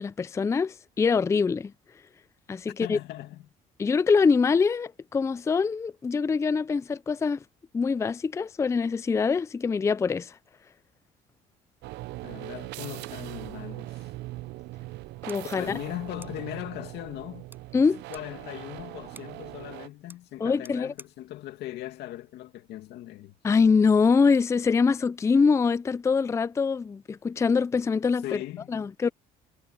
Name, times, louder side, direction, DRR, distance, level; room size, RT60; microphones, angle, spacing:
voice 1, 0.0-1.7 2.5-3.0 3.8-7.4 7.7-10.4 15.3-15.6 17.7-18.0 20.4-20.9 23.4-28.4 28.7-29.1, left 5 dB, 15° left, 0.4 m, -24 dB
voice 2, 2.8-3.5 12.2-14.0 15.6-17.5 18.1-23.3 28.2-28.7, left 14 dB, 80° left, 2.3 m, -39 dB
sound 1, 11.8-19.9, right 18 dB, 85° right, 0.6 m, -40 dB
sound 2, 16.2-22.9, right 2 dB, 10° right, 5.9 m, -57 dB
cardioid pair, 110°, 17 cm